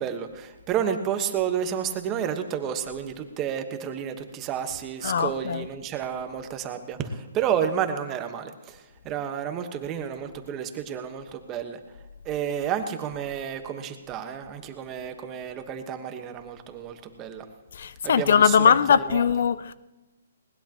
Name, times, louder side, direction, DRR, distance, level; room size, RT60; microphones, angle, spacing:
voice 1, 0.0-11.8 12.2-17.5 18.0-18.8 19.1-19.2, right 8 dB, 25° right, 1.3 m, -31 dB
voice 2, 5.0-5.7 17.7-19.7, left 7 dB, 60° left, 0.5 m, -21 dB
20.5 x 19.5 x 3.0 m
hypercardioid pair, 145°, 0 cm